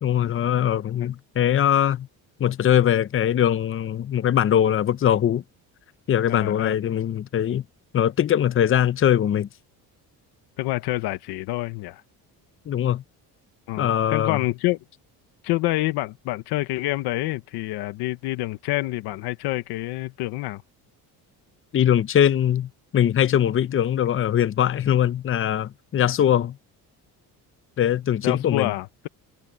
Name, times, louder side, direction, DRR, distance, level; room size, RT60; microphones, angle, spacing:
voice 1, 0.0-2.1 2.4-5.4 6.1-7.6 7.9-9.5 12.7-13.0 13.8-14.4 21.7-26.6 27.8-28.7, left 10 dB, 35° left, 0.7 m, -21 dB
voice 2, 6.3-6.8 10.6-12.0 13.7-14.8 15.4-20.6 28.2-29.1, left 18 dB, 90° left, 1.3 m, -27 dB
cardioid pair, 115°, 38 cm